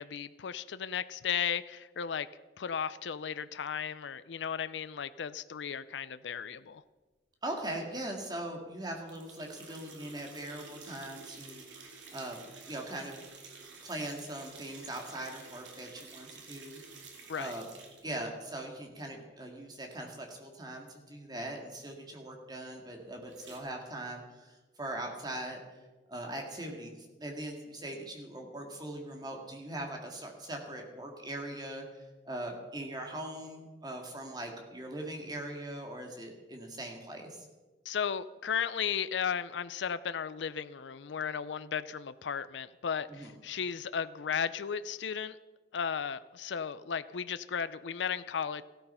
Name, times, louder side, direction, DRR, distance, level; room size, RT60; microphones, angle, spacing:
voice 1, 0.0-2.3 2.6-6.8 17.3-17.5 37.9-45.4 45.7-48.6, left 7 dB, 80° left, 14 dB, 0.5 m, -35 dB
voice 2, 7.4-12.4 12.7-13.2 13.8-16.8 17.4-17.7 18.0-25.6 26.1-37.5 43.1-43.3, right 1 dB, 20° right, 2 dB, 2.1 m, -41 dB
sound 1, 9.1-18.1 23.3-23.6, right 4 dB, 85° right, 2.7 m, -51 dB
15.0 x 13.0 x 5.6 m, 1.2 s
head